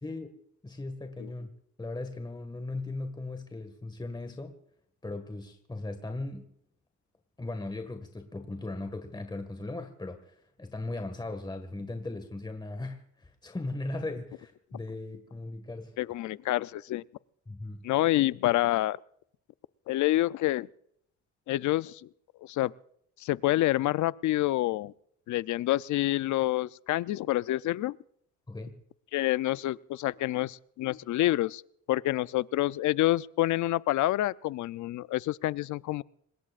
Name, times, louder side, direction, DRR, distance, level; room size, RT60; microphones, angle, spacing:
voice 1, 0.6-1.5 1.8-4.6 5.0-6.5 7.4-16.0 17.5-17.9 28.5-28.8, left 2 dB, 15° left, 1.8 m, -38 dB
voice 2, 16.0-17.0 17.8-19.0 19.9-20.7 21.5-22.1 22.4-22.7 23.2-24.9 25.3-28.0 29.1-31.6 31.9-36.0, left 16 dB, 75° left, 0.5 m, -27 dB
26.5 x 20.5 x 2.5 m
cardioid pair, 90°, 30 cm